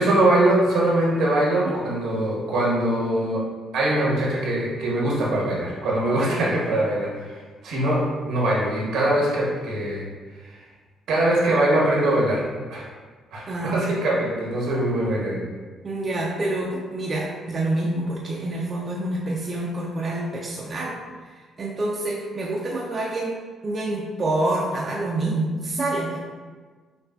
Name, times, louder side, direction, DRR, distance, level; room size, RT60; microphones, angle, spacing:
voice 1, 0.0-3.4 3.7-10.0 10.4-10.6 11.1-12.4 12.7-12.8 13.3-15.4, right 1 dB, 80° right, -4 dB, 1.1 m, -22 dB
voice 2, 13.5-14.0 15.8-21.0 21.6-26.2, right 2 dB, 40° right, -3 dB, 0.5 m, -27 dB
6.0 x 2.4 x 2.3 m, 1.4 s
cardioid pair, 80°, 0 cm